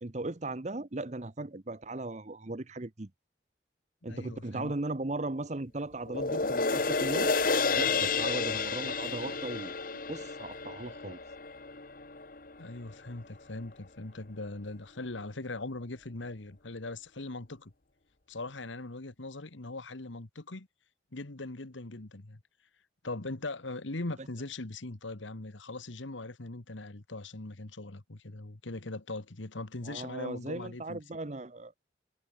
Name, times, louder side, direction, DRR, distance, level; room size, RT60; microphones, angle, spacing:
voice 1, 0.0-3.1 4.0-7.3 7.7-9.7 10.1-11.2 29.8-31.7, right 2 dB, 35° right, 0.9 m, -37 dB
voice 2, 4.0-4.7 12.6-17.7 18.3-20.7 21.1-22.4 23.0-31.0, left 2 dB, 80° left, 1.6 m, -40 dB
sound 1, 6.1-12.6 13.1-13.2, left 4 dB, 45° left, 1.5 m, -31 dB
head